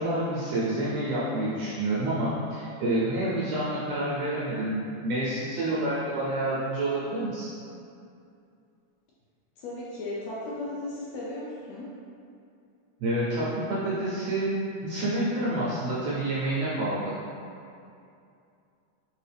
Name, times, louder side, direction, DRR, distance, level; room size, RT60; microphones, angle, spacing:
voice 1, 0.0-7.5 13.0-17.1, right 1 dB, 80° right, -8 dB, 1.5 m, -28 dB
voice 2, 9.6-11.9, left 2 dB, 75° left, -6 dB, 1.7 m, -36 dB
4.5 x 2.7 x 3.3 m, 2.5 s
omnidirectional pair, 3.4 m